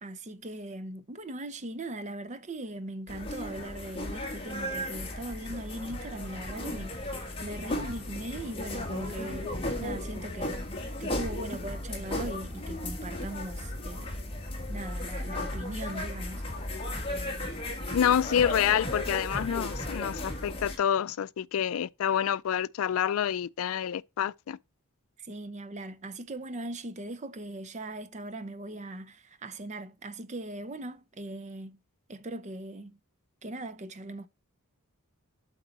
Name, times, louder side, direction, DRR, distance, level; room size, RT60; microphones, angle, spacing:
voice 1, 0.0-10.6 11.0-14.3 14.7-16.4 25.2-31.8 32.1-33.0 33.4-34.3, right 1 dB, 35° right, 0.6 m, -39 dB
sound 1, 3.1-20.8, left 1 dB, 25° left, 1.7 m, -35 dB
voice 2, 17.9-24.6, left 9 dB, 70° left, 0.3 m, -28 dB
7.8 x 4.5 x 4.1 m
head